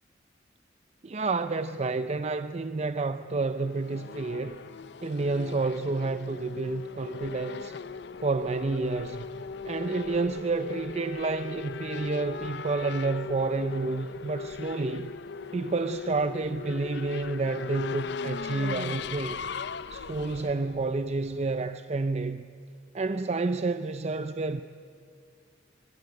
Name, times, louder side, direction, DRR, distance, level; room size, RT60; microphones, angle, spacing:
voice 1, 1.0-4.6 5.0-7.8 8.2-15.1 15.5-19.4 19.9-22.5 22.9-24.6, right 3 dB, 35° right, 0.6 m, -30 dB
Race car auto racing / Accelerating revving vroom, 3.4-21.6, left 5 dB, 65° left, 0.6 m, -38 dB
24.0 x 22.5 x 9.6 m
head